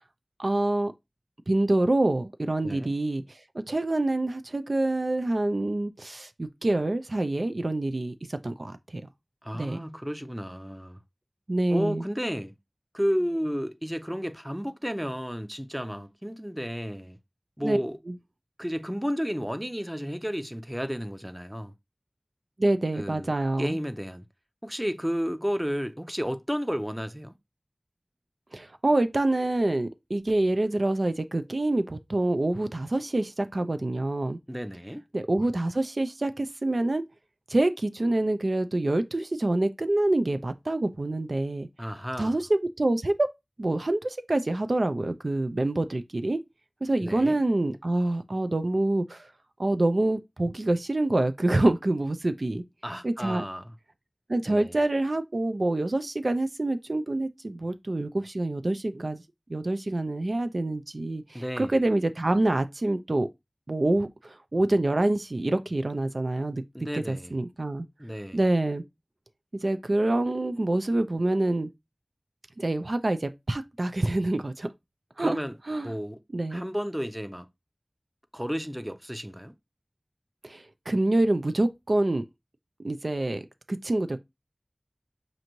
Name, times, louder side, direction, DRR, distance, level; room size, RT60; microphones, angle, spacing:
voice 1, 0.4-0.9 1.5-3.2 3.5-9.0 9.5-9.8 11.5-12.0 17.6-17.8 18.1-18.2 22.6-23.8 28.5-34.4 35.1-37.1 37.5-41.7 42.2-43.3 43.6-46.4 46.8-49.3 49.6-52.6 53.0-53.4 54.3-59.2 59.5-63.3 63.7-66.6 66.9-67.9 68.3-68.8 69.6-71.7 72.6-74.7 75.2-75.4 75.7-75.9 76.3-76.6 80.4-82.2 82.8-83.4 83.7-84.2, right 2 dB, 80° right, 0.4 m, -26 dB
voice 2, 9.4-11.0 11.7-12.6 12.9-17.2 17.6-18.0 18.6-21.7 22.9-24.2 24.6-27.3 34.5-35.0 41.8-42.4 47.0-47.4 52.8-53.7 54.4-54.8 61.3-61.8 66.7-67.3 68.0-68.4 75.2-75.5 75.8-76.2 76.5-77.5 78.3-79.5, equal, 10° right, 0.5 m, -32 dB
6.3 x 2.6 x 3.0 m
wide cardioid pair, 45°, 0 cm